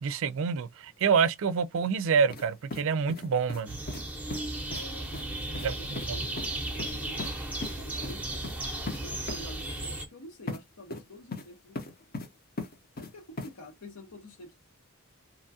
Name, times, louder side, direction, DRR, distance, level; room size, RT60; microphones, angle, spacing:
voice 1, 0.0-3.8 5.6-5.7 6.1-6.2, right 6 dB, 60° right, 0.4 m, -27 dB
sound 1, 2.3-2.5 2.7-3.6 3.9-4.0 4.3-4.4 4.7-4.9 5.1-5.3 5.5-5.7 6.0-6.1 6.4-6.5 6.8-7.3 7.6-7.8 8.0-8.2 8.4-8.6 8.9-9.0 9.3-9.4 10.5-10.6 10.9-11.5 11.8-12.3 12.6-13.1 13.4-13.5, left 3 dB, 40° left, 0.7 m, -37 dB
sound 2, 3.6-10.1, right 1 dB, 5° right, 0.7 m, -35 dB
voice 2, 4.7-8.5 9.0-11.8 13.0-14.5, equal, 85° left, 1.0 m, -48 dB
2.9 x 2.3 x 2.6 m
head